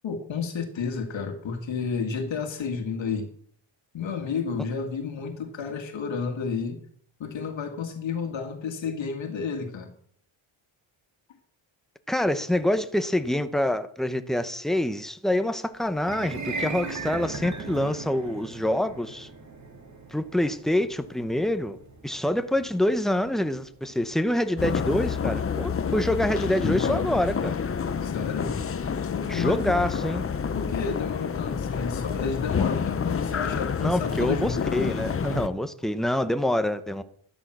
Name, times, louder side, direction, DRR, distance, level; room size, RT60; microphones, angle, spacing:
voice 1, 0.0-3.3 3.9-6.8 7.2-9.9 28.0-28.6 29.1-29.8 30.5-34.6, left 5 dB, 65° left, 2.1 m, -31 dB
voice 2, 12.1-19.3 20.1-21.8 22.0-27.5 29.3-30.3 33.8-37.0, left 1 dB, ahead, 0.9 m, -26 dB
sound 1, 16.0-26.3, right 3 dB, 35° right, 2.5 m, -39 dB
sound 2, 24.6-35.5, left 6 dB, 30° left, 0.7 m, -28 dB
13.0 x 12.5 x 6.1 m
cardioid pair, 115°, 48 cm